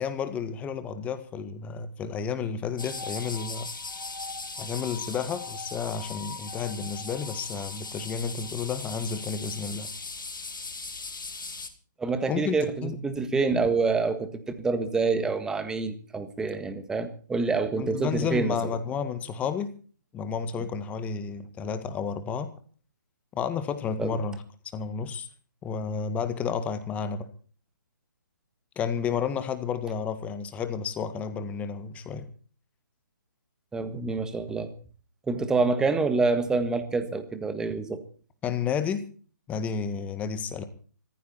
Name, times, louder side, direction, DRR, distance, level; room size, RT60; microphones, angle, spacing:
voice 1, 0.0-3.7 4.6-9.9 12.3-13.0 17.8-19.7 20.1-22.5 23.3-24.4 24.7-25.3 25.6-27.3 28.8-32.3 38.4-39.0 39.5-40.6, left 6 dB, 15° left, 11 dB, 1.8 m, -31 dB
sound 1, 2.8-11.7, left 4 dB, 75° left, 4.3 m, -38 dB
voice 2, 12.0-18.6 24.0-24.2 33.7-34.7 35.3-38.0, right 4 dB, 5° right, 10 dB, 1.6 m, -27 dB
20.5 x 15.0 x 4.3 m, 0.41 s
figure-of-eight pair, 145°, 11 cm